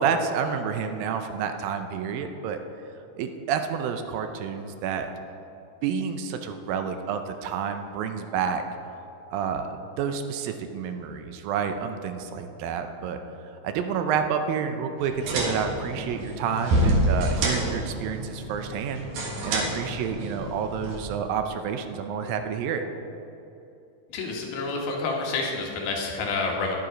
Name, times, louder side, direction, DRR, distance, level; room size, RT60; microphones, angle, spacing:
voice 1, 0.0-2.6 3.2-5.1 5.8-8.6 9.3-13.2 13.6-22.8, right 7 dB, 80° right, 7 dB, 2.4 m, -29 dB
sound 1, 15.0-21.0, right 1 dB, 65° right, 2.9 m, -28 dB
voice 2, 24.1-26.8, left 3 dB, 80° left, 0 dB, 3.2 m, -28 dB
10.5 x 9.7 x 5.1 m, 2.8 s
omnidirectional pair, 4.2 m